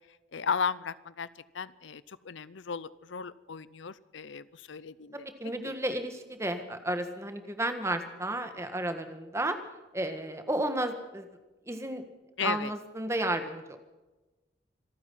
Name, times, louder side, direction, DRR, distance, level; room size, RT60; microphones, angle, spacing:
voice 1, 0.3-1.3 1.5-5.3 5.6-5.7 12.4-12.7, left 6 dB, 70° left, 18 dB, 0.6 m, -35 dB
voice 2, 5.4-9.6 9.9-11.3 11.7-12.0 12.4-13.8, right 1 dB, 15° right, 8 dB, 1.5 m, -32 dB
26.5 x 9.4 x 5.7 m, 1.1 s
head